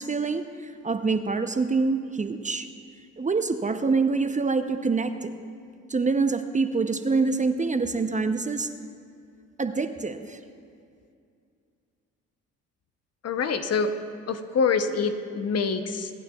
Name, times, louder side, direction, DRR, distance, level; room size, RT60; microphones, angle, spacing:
voice 1, 0.0-2.7 3.2-5.3 5.9-8.7 9.6-10.4, right 4 dB, 20° right, 8 dB, 0.6 m, -26 dB
voice 2, 13.2-13.9 14.3-16.1, left 5 dB, 45° left, 9 dB, 0.8 m, -25 dB
25.5 x 9.2 x 2.4 m, 2.4 s
hypercardioid pair, 55°, 34 cm